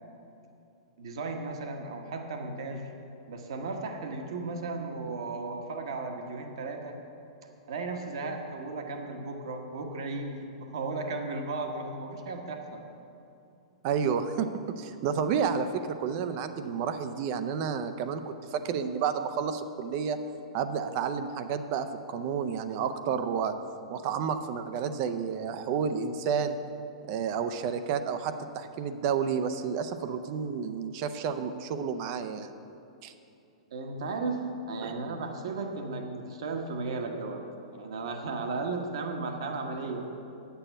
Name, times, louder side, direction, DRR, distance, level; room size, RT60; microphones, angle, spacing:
voice 1, 1.0-2.9 3.3-7.0 7.7-12.8 33.7-34.4 34.7-40.1, right 3 dB, 55° right, 4 dB, 1.2 m, -35 dB
voice 2, 13.8-20.2 20.5-23.5 23.9-26.6 27.1-32.5 33.0-33.1 34.8-34.9, right 6 dB, 40° right, 9 dB, 0.6 m, -30 dB
9.8 x 6.9 x 6.9 m, 2.7 s
figure-of-eight pair, 105°, 3 cm